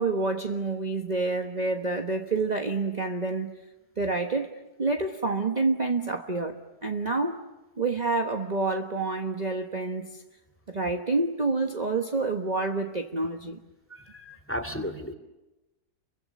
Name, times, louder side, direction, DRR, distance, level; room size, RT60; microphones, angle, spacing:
voice 1, 0.0-3.5 4.0-7.4 7.8-10.2 10.7-13.6, right 3 dB, 30° right, 1.4 m, -28 dB
voice 2, 13.9-15.1, equal, 10° left, 2.6 m, -34 dB
29.0 x 24.0 x 8.4 m
omnidirectional pair, 1.6 m